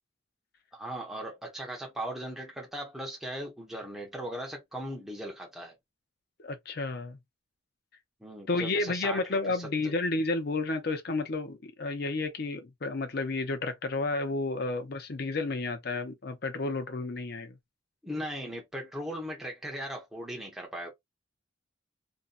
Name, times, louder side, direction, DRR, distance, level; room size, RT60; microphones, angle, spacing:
voice 1, 0.7-5.8 8.2-9.9 18.0-20.9, equal, ahead, 0.6 m, -38 dB
voice 2, 6.4-7.2 8.5-17.5, left 3 dB, 55° left, 0.6 m, -31 dB
2.7 x 2.2 x 2.4 m
head